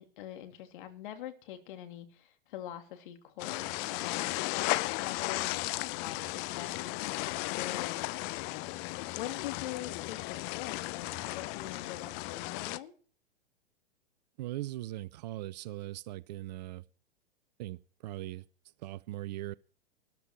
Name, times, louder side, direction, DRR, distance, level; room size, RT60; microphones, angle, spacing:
voice 1, 0.0-4.4 4.9-12.9, left 12 dB, 50° left, 2.9 m, -44 dB
sound 1, 3.4-12.8, left 21 dB, 30° left, 0.6 m, -35 dB
voice 2, 14.4-16.8 17.6-18.4 18.8-19.5, right 16 dB, 40° right, 0.6 m, -40 dB
13.5 x 12.0 x 4.5 m
figure-of-eight pair, 110°, 33 cm